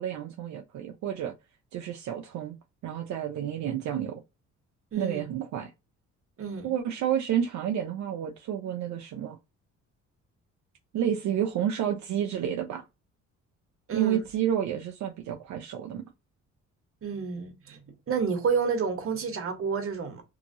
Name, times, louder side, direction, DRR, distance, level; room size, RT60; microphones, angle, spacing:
voice 1, 0.0-1.3 1.7-2.6 2.8-4.2 5.0-5.7 6.6-9.4 10.9-12.8 13.9-16.0, right 10 dB, 70° right, 0.6 m, -30 dB
voice 2, 6.4-6.7 13.9-14.2 17.0-17.8 18.1-20.2, right 5 dB, 45° right, 1.1 m, -29 dB
2.9 x 2.6 x 2.5 m
cardioid pair, 90°, 30 cm